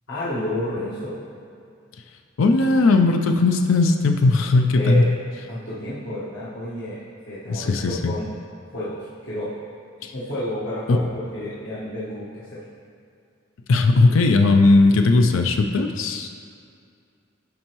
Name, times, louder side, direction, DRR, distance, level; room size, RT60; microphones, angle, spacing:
voice 1, 0.1-1.2 4.7-5.1 5.5-7.0 7.3-8.2 8.7-9.5 10.1-12.6, left 1 dB, 70° left, -9 dB, 1.3 m, -30 dB
voice 2, 2.4-5.1 7.5-8.1 10.0-10.1 13.7-16.3, left 3 dB, 90° left, 5 dB, 0.4 m, -18 dB
12.5 x 4.4 x 3.0 m, 2.3 s
head